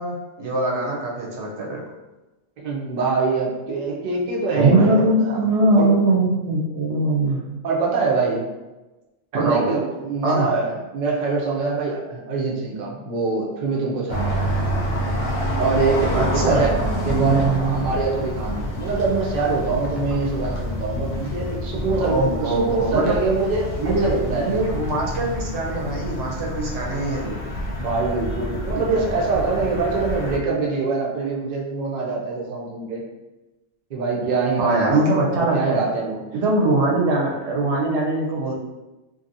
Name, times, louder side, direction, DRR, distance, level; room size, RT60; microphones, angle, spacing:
voice 1, 0.0-1.8 4.5-7.4 9.3-9.7 10.2-10.5 16.1-16.7 17.0-17.9 22.1-23.1 23.8-27.4 34.6-35.8 36.3-38.5, right 2 dB, 70° right, -3 dB, 0.9 m, -21 dB
voice 2, 2.6-5.4 5.7-5.9 7.6-8.4 9.3-14.4 15.6-16.7 17.0-24.6 27.7-33.0 33.9-35.0 35.3-36.2 36.6-36.7, right 4 dB, 50° right, -3 dB, 0.6 m, -24 dB
sound 1, 14.1-30.4, equal, 60° left, 0.7 m, -27 dB
2.7 x 2.7 x 2.5 m, 1.1 s
omnidirectional pair, 1.2 m